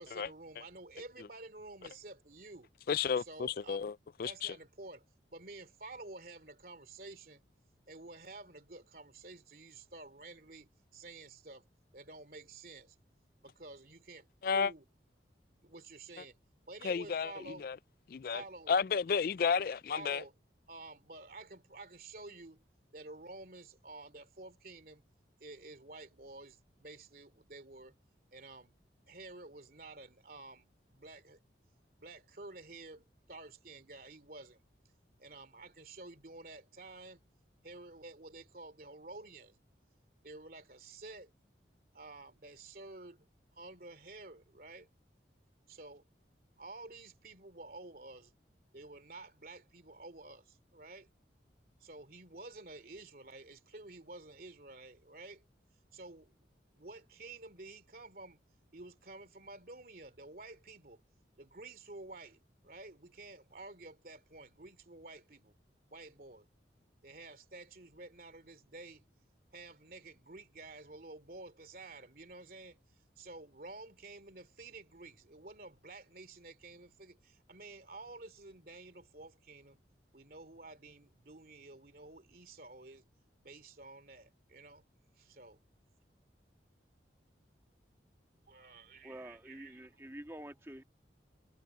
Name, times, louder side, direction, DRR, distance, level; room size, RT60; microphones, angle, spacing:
voice 1, 0.0-2.7 3.2-3.9 4.2-5.0 5.3-7.4 7.9-11.6 11.9-12.9 13.4-14.3 14.5-14.8 15.6-16.3 16.7-17.7 18.3-18.7 19.5-19.6 19.9-20.3 20.7-22.6 22.9-25.0 25.4-27.9 28.3-28.7 29.1-31.4 32.0-34.6 35.2-37.2 37.6-39.6 40.2-41.3 41.9-43.2 43.5-44.9 45.7-46.0 46.6-48.3 48.7-51.1 51.8-55.4 55.9-56.3 56.7-58.4 58.7-61.0 61.4-65.5 65.9-66.5 67.0-69.0 69.5-72.8 73.2-79.8 80.1-83.0 83.4-84.8 85.2-85.6 88.5-89.9, right 2 dB, 50° right, 2.9 m, -51 dB
voice 2, 2.9-3.9 4.2-4.5 14.4-14.7 16.8-17.3 17.6-17.8 18.1-18.4 18.7-20.2, left 6 dB, 50° left, 0.3 m, -32 dB
voice 3, 89.0-90.8, right 1 dB, 15° right, 1.9 m, -48 dB
head